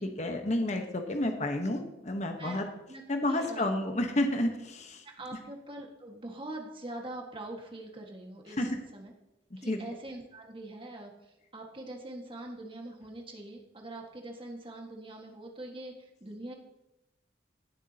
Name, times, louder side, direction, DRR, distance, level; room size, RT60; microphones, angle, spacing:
voice 1, 0.0-2.7 3.1-5.0 8.6-8.7 9.7-9.8, left 1 dB, 40° left, 5 dB, 1.1 m, -30 dB
voice 2, 2.9-3.7 5.0-9.1 9.6-16.5, right 1 dB, 30° right, 1 dB, 1.7 m, -43 dB
17.0 x 7.3 x 2.9 m, 0.93 s
head